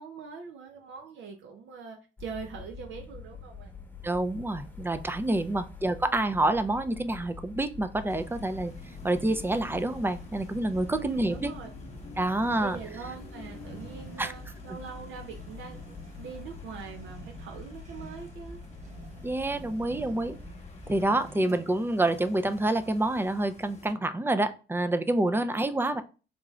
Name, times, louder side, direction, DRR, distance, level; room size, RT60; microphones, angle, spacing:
voice 1, 0.0-3.7 10.9-11.7 12.6-18.6 21.3-21.6 25.4-25.6, right 5 dB, 75° right, 3 dB, 0.6 m, -43 dB
sound 1, 2.2-21.1, left 3 dB, 10° left, 1.0 m, -46 dB
voice 2, 4.0-8.7 9.0-11.5 12.2-12.8 14.2-14.3 19.2-20.4 20.9-26.0, right 2 dB, 10° right, 10 dB, 0.3 m, -27 dB
sound 2, 7.9-21.7, right 2 dB, 40° right, 1.0 m, -50 dB
sound 3, 8.1-23.9, left 3 dB, 35° left, 0.8 m, -50 dB
3.8 x 2.3 x 3.0 m, 0.34 s
cardioid pair, 90°, 20 cm